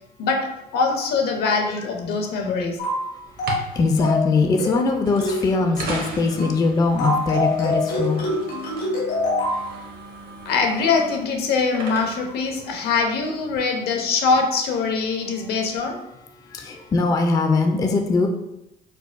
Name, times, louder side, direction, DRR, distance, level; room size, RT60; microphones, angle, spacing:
voice 1, 0.2-2.8 10.4-16.0, left 4 dB, 70° left, 3 dB, 0.7 m, -23 dB
sound 1, 2.8-3.1 3.4-3.7 4.0-4.3 4.6-4.9 5.2-5.5 5.8-6.1 6.4-6.6 7.0-9.6, left 2 dB, 90° left, 1.3 m, -25 dB
voice 2, 3.1-8.3 16.4-18.3, left 3 dB, 20° left, 4 dB, 0.3 m, -21 dB
sound 2, 3.3-13.6, right 3 dB, 60° right, 0.8 m, -38 dB
4.6 x 2.2 x 2.4 m, 0.85 s
cardioid pair, 110°, 17 cm